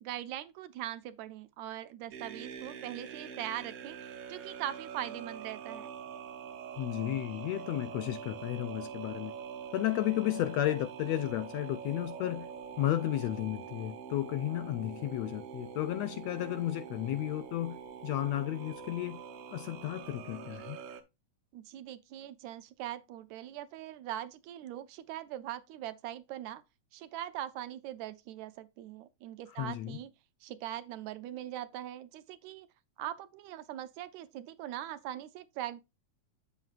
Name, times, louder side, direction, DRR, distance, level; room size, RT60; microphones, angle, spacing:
voice 1, 0.0-4.0 4.3-5.9 21.5-26.6 26.9-30.1 30.4-32.7 33.0-35.8, right 12 dB, 75° right, 1.8 m, -41 dB
sound 1, 2.1-21.0, right 7 dB, 60° right, 1.6 m, -44 dB
voice 2, 6.8-9.3 9.7-12.5 12.8-19.2 19.5-20.8 29.5-30.0, left 14 dB, 80° left, 1.6 m, -33 dB
8.5 x 7.3 x 2.4 m
omnidirectional pair, 3.4 m